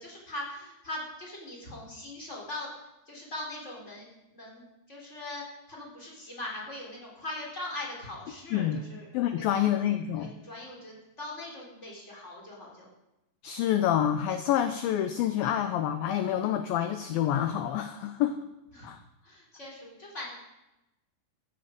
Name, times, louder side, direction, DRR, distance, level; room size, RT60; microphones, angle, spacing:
voice 1, 0.0-2.7 3.1-4.1 4.3-5.4 5.7-9.1 9.5-9.7 10.1-12.9 18.7-18.9 19.2-20.3, left 1 dB, 20° left, -3 dB, 3.2 m, -41 dB
voice 2, 8.5-8.8 9.1-10.3 13.4-18.4 18.8-19.0, left 10 dB, 85° left, 9 dB, 2.0 m, -27 dB
14.5 x 9.3 x 5.1 m, 0.93 s
omnidirectional pair, 5.0 m